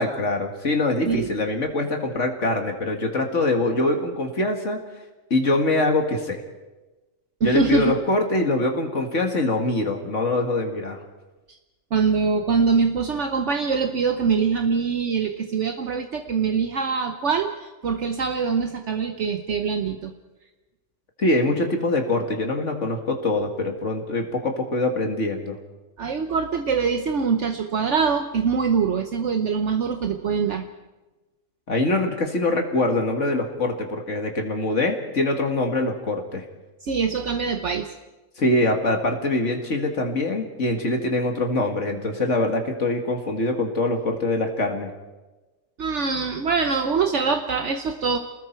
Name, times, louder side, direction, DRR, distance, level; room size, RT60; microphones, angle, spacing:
voice 1, 0.0-4.8 5.3-6.4 7.4-11.0 21.2-25.6 31.7-36.4 38.4-44.9, left 2 dB, 65° left, 3 dB, 2.3 m, -24 dB
voice 2, 7.4-8.0 11.9-20.1 26.0-30.6 36.8-37.9 45.8-48.2, right 5 dB, 65° right, 6 dB, 1.2 m, -23 dB
29.0 x 20.0 x 4.5 m, 1.2 s
omnidirectional pair, 1.3 m